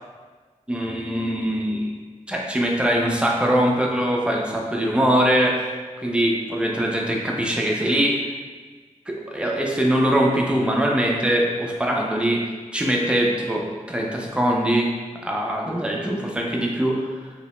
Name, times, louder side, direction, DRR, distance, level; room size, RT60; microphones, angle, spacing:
voice 1, 0.7-8.2 9.1-14.9 15.2-17.3, equal, 10° right, -1 dB, 0.5 m, -22 dB
2.8 x 2.0 x 3.0 m, 1.4 s
cardioid pair, 55°, 13 cm